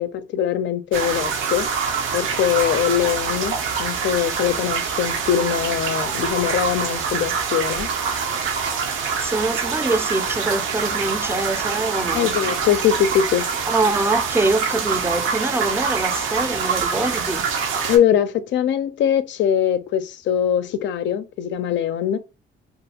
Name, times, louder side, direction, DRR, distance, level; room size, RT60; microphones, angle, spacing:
voice 1, 0.0-1.7 2.1-7.9 12.1-13.5 17.9-22.2, left 9 dB, 65° left, 0.4 m, -22 dB
sound 1, 0.9-18.0, right 6 dB, 85° right, 0.6 m, -25 dB
voice 2, 9.2-12.3 13.7-17.4, right 2 dB, 10° right, 0.4 m, -24 dB
2.4 x 2.4 x 2.8 m
cardioid pair, 90°, 20 cm